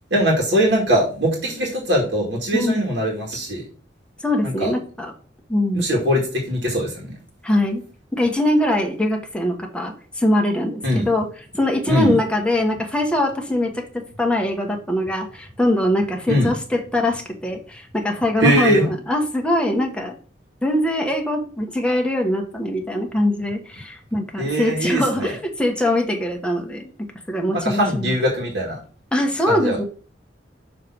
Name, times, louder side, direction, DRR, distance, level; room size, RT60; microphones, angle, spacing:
voice 1, 0.1-3.6 4.4-4.7 5.7-7.1 10.8-11.1 11.9-12.1 16.3-16.5 18.4-18.9 24.4-25.3 27.5-28.8 29.5-29.8, equal, 75° right, -2 dB, 2.0 m, -21 dB
voice 2, 4.2-5.1 5.5-5.9 7.4-7.8 8.1-11.3 11.5-20.2 20.6-26.9 27.3-28.2 29.1-29.8, left 1 dB, 5° left, 2 dB, 1.3 m, -22 dB
6.5 x 3.4 x 5.9 m, 0.40 s
head